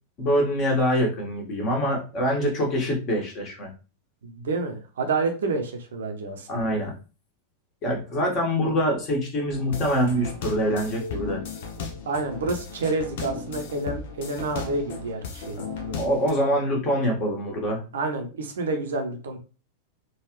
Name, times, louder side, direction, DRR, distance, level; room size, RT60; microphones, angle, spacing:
voice 1, 0.2-3.7 6.5-6.9 7.8-11.4 15.9-17.8, equal, 35° left, -1 dB, 1.5 m, -24 dB
voice 2, 4.2-6.7 12.1-16.0 17.9-19.4, right 3 dB, 65° right, 4 dB, 0.8 m, -29 dB
sound 1, 9.5-16.3, left 5 dB, 55° left, 0.7 m, -36 dB
3.8 x 2.5 x 3.0 m, 0.33 s
figure-of-eight pair, 90°, 0 cm